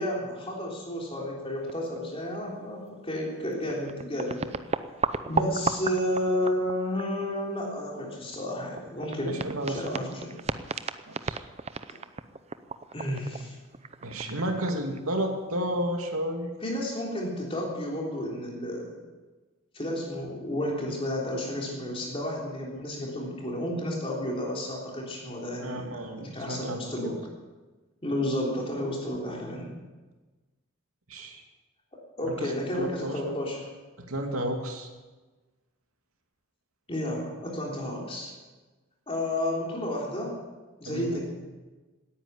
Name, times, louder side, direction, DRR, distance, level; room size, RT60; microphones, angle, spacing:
voice 1, 0.0-4.5 5.3-9.4 9.7-10.3 12.9-13.6 16.6-18.9 19.7-27.2 28.0-29.8 32.2-33.6 36.9-38.3 39.1-40.4 40.8-41.2, left 1 dB, 25° left, -2 dB, 3.5 m, -31 dB
sound 1, 1.7-2.1 2.3-2.5 3.3-3.4 3.6-7.4 7.8-15.4, right 5 dB, 30° right, 0.6 m, -34 dB
voice 2, 9.3-10.0 11.3-11.4 14.0-16.5 25.6-27.1 31.1-31.4 32.3-33.4 34.1-34.9 40.9-41.2, right 1 dB, 85° right, 3 dB, 2.6 m, -32 dB
17.5 x 10.0 x 8.1 m, 1.2 s
head